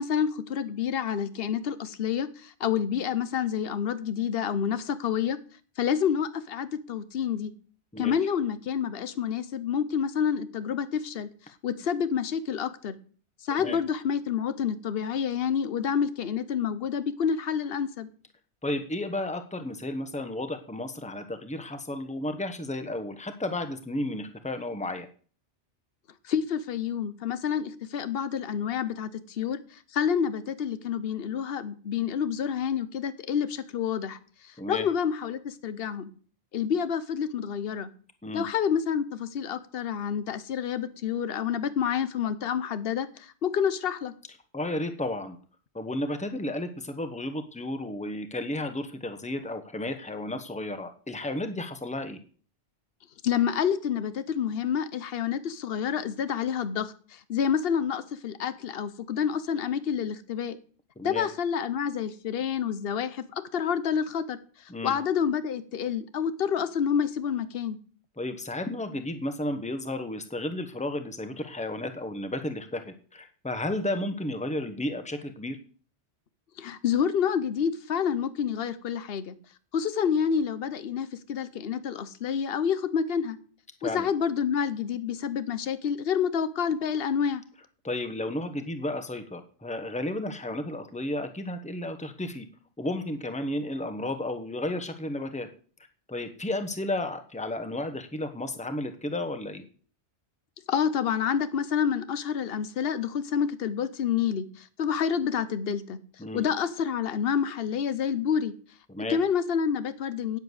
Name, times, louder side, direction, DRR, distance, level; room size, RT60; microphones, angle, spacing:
voice 1, 0.0-5.4 5.8-7.5 8.0-11.3 11.6-12.9 13.4-18.1 26.2-34.2 34.4-36.1 36.5-37.9 38.3-44.1 53.2-60.6 61.0-67.8 76.6-79.4 79.7-83.4 83.8-87.4 100.7-106.0 106.3-108.5 109.1-110.4, left 7 dB, 60° left, 1.1 m, -28 dB
voice 2, 18.6-25.1 34.6-34.9 38.2-38.5 44.5-45.4 45.7-52.2 61.0-61.3 64.7-65.0 68.2-75.6 83.8-84.1 87.8-92.5 92.8-95.5 96.1-99.6 106.2-106.5 108.9-109.2, left 1 dB, 5° left, 1.1 m, -33 dB
9.5 x 7.8 x 8.0 m
omnidirectional pair, 1.2 m